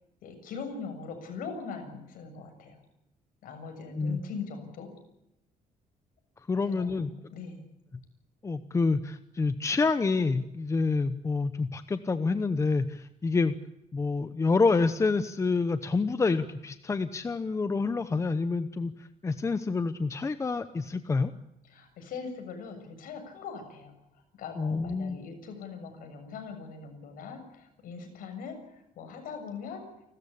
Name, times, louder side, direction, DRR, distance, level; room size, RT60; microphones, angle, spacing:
voice 1, 0.2-2.8 3.4-4.9 6.7-7.0 7.3-7.7 21.6-23.9 24.4-29.9, left 5 dB, 90° left, 6 dB, 7.0 m, -41 dB
voice 2, 6.5-7.1 8.4-13.5 13.9-21.3 24.6-25.2, left 4 dB, 20° left, 11 dB, 0.9 m, -27 dB
29.5 x 14.0 x 8.5 m, 0.88 s
cardioid pair, 150°, 14 cm